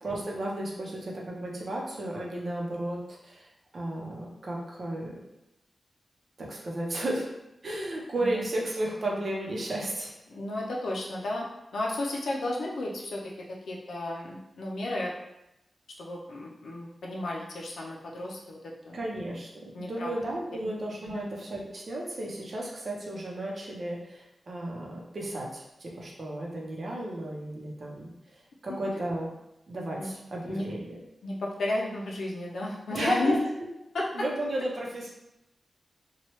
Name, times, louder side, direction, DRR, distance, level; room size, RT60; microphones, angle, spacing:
voice 1, 0.0-5.1 6.4-7.3 7.6-10.1 18.9-28.1 28.6-29.3 29.7-31.0 32.9-33.4 34.1-35.1, right 1 dB, 55° right, -2 dB, 0.7 m, -33 dB
voice 2, 10.3-11.5 11.7-15.1 16.0-18.6 18.8-19.0 19.7-20.1 21.1-21.3 30.0-30.1 30.4-30.7 31.2-33.4 33.9-34.1, left 2 dB, 90° left, -3 dB, 0.4 m, -33 dB
2.9 x 2.3 x 3.0 m, 0.89 s
wide cardioid pair, 100°, 0 cm